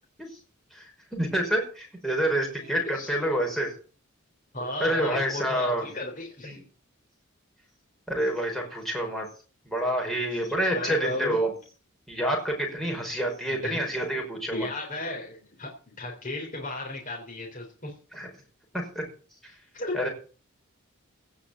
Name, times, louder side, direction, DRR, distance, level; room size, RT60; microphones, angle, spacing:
voice 1, 0.7-3.7 4.8-5.9 6.4-6.6 8.1-9.3 9.7-11.5 12.1-14.7 18.1-18.3 18.7-19.1 19.4-19.5 19.9-20.1, right 1 dB, ahead, 0 dB, 5.4 m, -28 dB
voice 2, 4.5-6.6 10.7-11.4 13.5-13.8 14.5-17.9 19.7-20.0, left 2 dB, 40° left, 0 dB, 3.6 m, -34 dB
16.5 x 6.2 x 8.5 m, 0.39 s
head